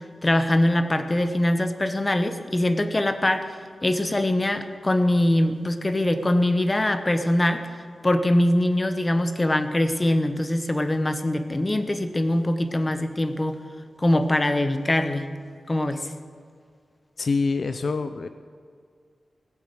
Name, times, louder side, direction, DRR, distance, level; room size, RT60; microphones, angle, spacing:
voice 1, 0.2-3.5 3.8-7.7 8.0-13.6 14.0-15.3 15.7-16.1, left 1 dB, 20° left, 9 dB, 1.0 m, -23 dB
voice 2, 17.2-18.3, left 4 dB, 60° left, 10 dB, 0.6 m, -25 dB
18.5 x 8.6 x 7.7 m, 2.2 s
wide cardioid pair, 125°, 0 cm